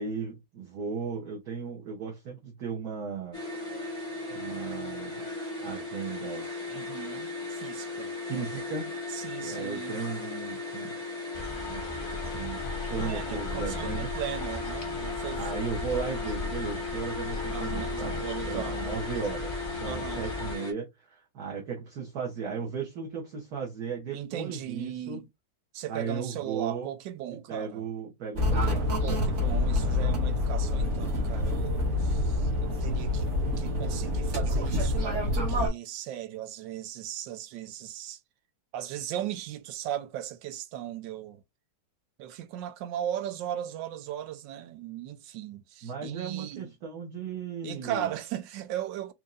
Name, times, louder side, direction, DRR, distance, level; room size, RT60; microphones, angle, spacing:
voice 1, 0.0-3.4 4.3-5.3 5.6-6.5 8.3-9.0 9.4-11.0 11.7-11.8 12.1-12.6 12.9-14.1 15.3-25.2 25.9-26.9 27.5-28.9 45.8-48.1, right 6 dB, 60° right, 1.5 m, -36 dB
sound 1, 3.3-20.7, left 3 dB, 20° right, 1.4 m, -37 dB
voice 2, 6.7-8.1 9.1-10.0 13.0-15.7 17.5-19.0 19.9-20.3 24.1-25.3 25.7-27.9 29.0-33.3 33.6-38.2 38.7-41.4 42.2-46.7 47.6-49.1, right 11 dB, 90° right, 1.3 m, -37 dB
sound 2, 11.3-20.5, left 3 dB, 45° left, 0.7 m, -37 dB
sound 3, 28.4-35.7, left 2 dB, 45° right, 1.3 m, -27 dB
4.5 x 2.7 x 2.5 m
omnidirectional pair, 1.9 m